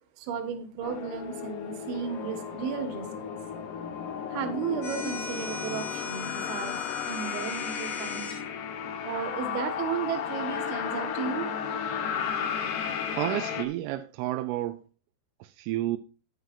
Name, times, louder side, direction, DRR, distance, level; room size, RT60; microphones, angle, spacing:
voice 1, 0.2-3.3 4.3-6.8 7.0-8.3 9.0-11.5, right 7 dB, 65° right, 2.8 m, -34 dB
sound 1, 0.8-13.7, left 7 dB, 70° left, 2.8 m, -34 dB
sound 2, 2.0-6.5, left 5 dB, 85° left, 4.4 m, -46 dB
sound 3, 4.8-8.4, left 5 dB, 40° left, 2.7 m, -38 dB
voice 2, 13.1-14.8 15.4-16.0, right 14 dB, 85° right, 3.0 m, -31 dB
11.0 x 10.0 x 2.6 m
omnidirectional pair, 5.8 m